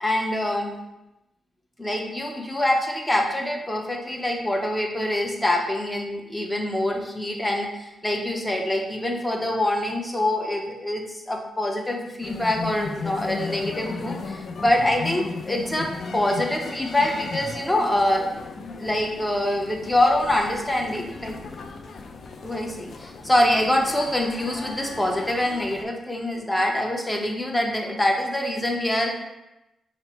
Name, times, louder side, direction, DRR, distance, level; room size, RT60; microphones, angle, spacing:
voice 1, 0.0-0.8 1.8-15.9 16.1-18.2 18.6-21.4 22.4-29.1, left 1 dB, 10° left, 1 dB, 0.7 m, -25 dB
sound 1, 12.2-25.8, left 4 dB, 60° left, 0.3 m, -36 dB
4.3 x 2.0 x 4.3 m, 0.95 s
cardioid pair, 85°, 0 cm